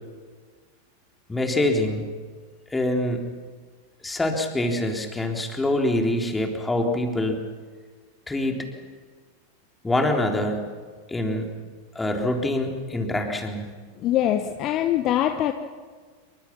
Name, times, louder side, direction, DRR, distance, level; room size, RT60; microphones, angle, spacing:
voice 1, 1.3-2.1 2.7-3.2 4.0-7.5 8.3-8.7 9.8-10.7 11.1-11.5 12.0-13.6, left 1 dB, 10° left, 2 dB, 3.6 m, -25 dB
voice 2, 14.0-15.5, left 12 dB, 35° left, 8 dB, 1.2 m, -23 dB
28.0 x 24.0 x 6.0 m, 1.5 s
figure-of-eight pair, 90°, 0 cm